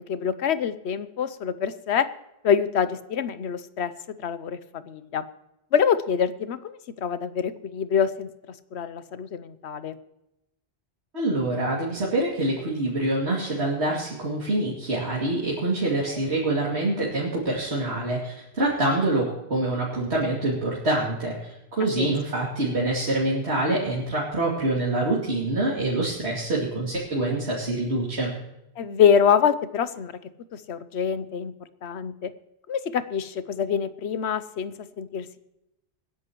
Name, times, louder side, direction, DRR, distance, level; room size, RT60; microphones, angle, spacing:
voice 1, 0.0-2.1 2.4-3.9 4.2-5.2 5.7-8.3 8.7-9.9 16.1-16.2 22.0-22.2 28.8-30.1 30.5-31.5 31.8-32.3 32.7-35.4, left 7 dB, 90° left, 13 dB, 1.0 m, -25 dB
voice 2, 11.1-28.3, right 2 dB, 80° right, -5 dB, 2.8 m, -26 dB
25.5 x 10.5 x 3.0 m, 0.88 s
omnidirectional pair, 1.1 m